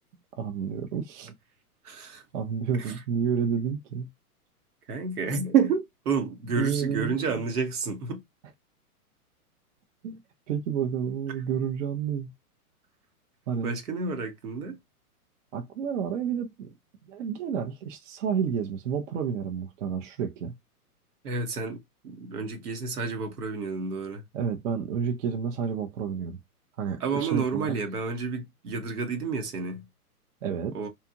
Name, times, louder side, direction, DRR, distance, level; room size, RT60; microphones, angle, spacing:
voice 1, 0.4-1.3 2.3-4.1 6.6-7.1 10.0-10.2 10.5-12.3 13.5-13.8 15.5-16.7 17.0-20.5 24.3-26.4 26.8-27.7 30.4-30.8, right 7 dB, 55° right, 0.7 m, -30 dB
voice 2, 1.8-2.2 2.8-3.0 4.9-8.2 13.6-14.8 21.2-24.2 27.0-29.8 30.7-30.9, right 5 dB, 80° right, 1.1 m, -30 dB
2.8 x 2.4 x 2.4 m
hypercardioid pair, 130°, 45 cm